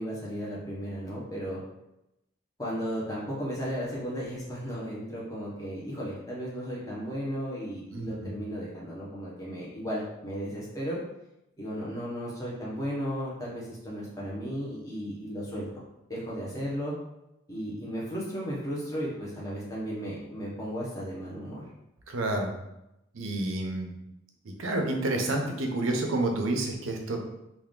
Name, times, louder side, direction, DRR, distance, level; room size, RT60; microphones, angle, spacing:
voice 1, 0.0-1.6 2.6-11.0 11.6-15.8 16.1-16.9 17.5-21.6, equal, 15° left, -6 dB, 1.1 m, -35 dB
voice 2, 7.9-8.3 22.1-22.5 23.1-23.9 24.6-27.2, right 2 dB, 90° right, 3 dB, 0.7 m, -29 dB
3.4 x 2.6 x 3.7 m, 0.88 s
head